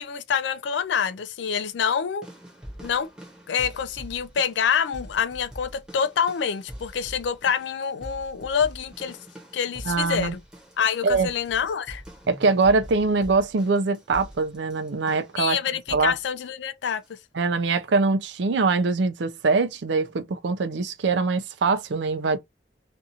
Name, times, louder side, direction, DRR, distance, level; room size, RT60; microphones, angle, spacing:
voice 1, 0.0-2.3 2.8-3.1 3.5-9.2 9.5-10.4 10.8-12.0 15.4-17.2, left 7 dB, 70° left, 0.4 m, -26 dB
sound 1, 2.2-15.4 15.9-16.2 17.0-17.1, equal, 5° right, 0.8 m, -44 dB
voice 2, 9.9-10.4 11.0-11.3 12.3-15.6 15.9-16.1 17.3-22.4, right 4 dB, 75° right, 0.5 m, -23 dB
2.6 x 2.4 x 2.7 m
head